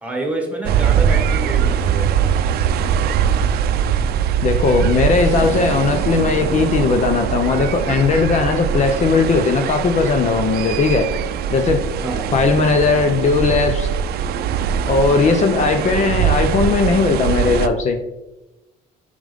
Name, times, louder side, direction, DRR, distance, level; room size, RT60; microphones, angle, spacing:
voice 1, 0.0-2.1 12.0-12.3 15.6-15.7, right 2 dB, 10° right, 2 dB, 1.7 m, -27 dB
sound 1, 0.7-17.7, right 8 dB, 70° right, 0.5 m, -21 dB
voice 2, 4.4-11.1 11.5-11.8 12.3-13.9 14.9-18.0, left 4 dB, 45° left, 7 dB, 0.7 m, -17 dB
7.3 x 5.1 x 3.6 m, 0.98 s
cardioid pair, 110°, 17 cm